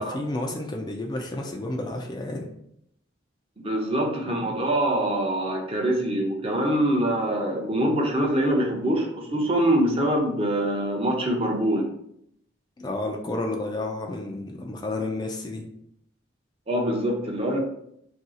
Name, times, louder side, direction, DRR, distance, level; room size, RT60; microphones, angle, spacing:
voice 1, 0.0-2.5 12.8-15.6, left 2 dB, 20° left, 2 dB, 0.3 m, -31 dB
voice 2, 3.6-11.9 16.7-17.6, right 1 dB, 30° right, 1 dB, 0.6 m, -24 dB
2.7 x 2.3 x 3.7 m, 0.73 s
head